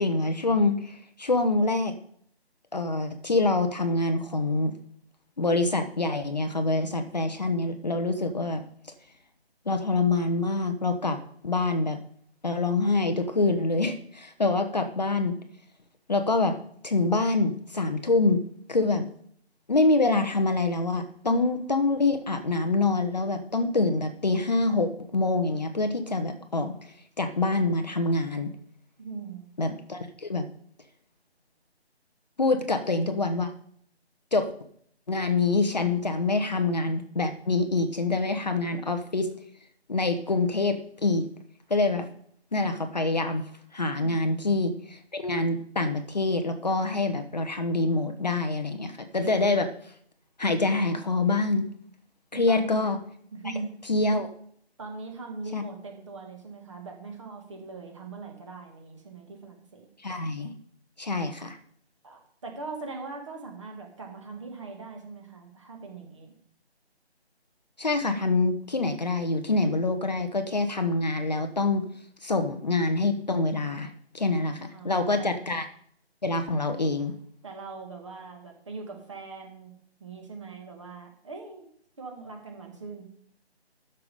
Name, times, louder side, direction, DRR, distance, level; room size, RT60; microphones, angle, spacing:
voice 1, 0.0-1.9 2.7-4.7 5.4-8.6 9.7-11.2 11.4-12.0 12.4-15.3 16.1-16.6 16.8-18.4 18.7-19.1 19.7-26.7 27.2-28.5 29.6-30.5 32.4-33.5 34.3-34.5 35.1-39.3 39.9-41.3 41.7-42.1 42.5-43.4 43.7-49.7 50.4-51.7 52.3-53.0 53.9-54.3 55.5-55.6 60.0-60.5 61.0-61.6 67.8-71.9 72.2-73.9 74.1-75.6 76.2-77.1, left 3 dB, 40° left, 7 dB, 1.0 m, -25 dB
voice 2, 29.0-29.5 44.0-44.2 52.3-52.8 53.3-53.7 54.8-59.9 62.0-66.3 74.4-75.4 77.4-79.7 80.0-81.7 82.0-83.1, right 4 dB, 30° right, 2 dB, 2.2 m, -41 dB
13.0 x 5.8 x 5.1 m, 0.63 s
figure-of-eight pair, 155°, 33 cm